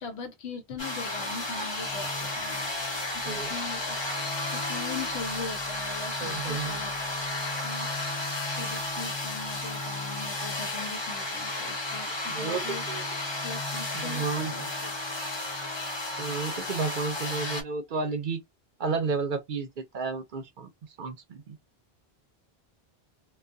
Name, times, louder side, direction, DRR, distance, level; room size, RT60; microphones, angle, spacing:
voice 1, 0.0-4.0 4.5-6.9 7.6-8.2 8.5-12.8 13.4-14.9, left 4 dB, 90° left, 1.0 m, -40 dB
sound 1, 0.8-17.6, left 2 dB, 30° left, 0.6 m, -33 dB
voice 2, 3.2-3.5 6.2-6.8 12.3-13.1 13.9-14.7 16.2-18.4 18.8-20.7 21.0-21.6, right 4 dB, 60° right, 0.6 m, -32 dB
2.3 x 2.2 x 2.5 m
omnidirectional pair, 1.1 m